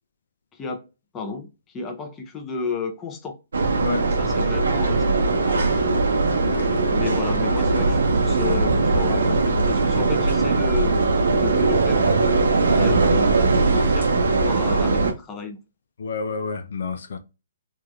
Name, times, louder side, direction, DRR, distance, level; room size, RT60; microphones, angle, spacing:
voice 1, 0.5-0.9 1.1-3.4 4.0-5.9 6.9-11.0 11.4-15.6, left 4 dB, 15° left, 0.6 m, -32 dB
sound 1, 3.5-15.1, right 3 dB, 80° right, 0.7 m, -20 dB
voice 2, 6.4-6.9 16.0-17.2, left 4 dB, 70° left, 0.4 m, -29 dB
3.0 x 2.5 x 2.3 m
hypercardioid pair, 145°, 0 cm